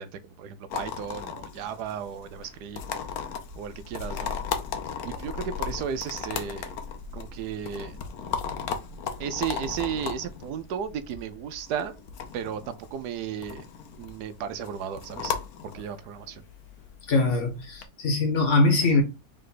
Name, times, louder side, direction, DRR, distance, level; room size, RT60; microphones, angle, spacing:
voice 1, 0.0-2.8 3.6-4.3 5.0-6.7 7.1-8.0 9.2-11.9 12.3-13.6 14.0-15.4 15.7-16.4, right 8 dB, 85° right, 1.2 m, -34 dB
sound 1, 0.7-17.9, left 6 dB, 70° left, 1.2 m, -36 dB
voice 2, 17.1-19.0, left 3 dB, 50° left, 1.4 m, -22 dB
3.7 x 3.3 x 4.0 m
omnidirectional pair, 1.7 m